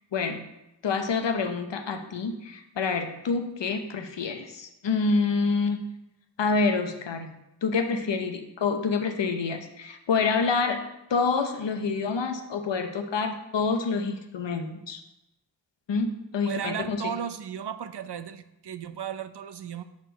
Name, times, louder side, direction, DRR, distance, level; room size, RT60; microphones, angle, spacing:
voice 1, 0.1-0.4 0.8-5.8 6.4-7.3 7.6-10.8 11.1-15.0 15.9-17.1, left 4 dB, 90° left, 6 dB, 0.8 m, -27 dB
voice 2, 16.4-19.8, right 8 dB, 70° right, 12 dB, 0.6 m, -35 dB
5.9 x 4.7 x 5.0 m, 0.91 s
wide cardioid pair, 45°, 42 cm